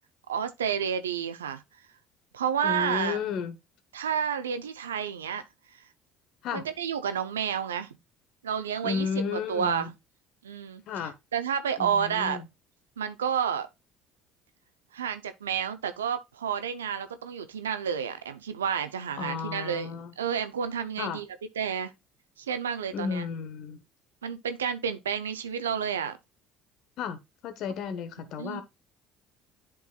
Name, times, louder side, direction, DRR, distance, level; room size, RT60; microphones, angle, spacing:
voice 1, 0.3-1.6 2.3-3.2 3.9-5.4 5.7-5.8 6.5-7.9 8.4-9.1 9.3-9.9 10.4-10.8 11.3-12.4 13.0-13.7 14.9-21.3 21.6-21.9 22.4-23.2 24.2-26.2 28.4-28.6, right 8 dB, 90° right, 0.5 m, -30 dB
voice 2, 2.6-3.6 6.4-6.6 8.8-9.9 10.9-11.1 11.8-12.4 19.2-20.1 21.0-21.2 22.9-23.8 27.0-28.6, left 6 dB, 60° left, 1.0 m, -33 dB
10.5 x 3.9 x 2.3 m
hypercardioid pair, 60°, 0 cm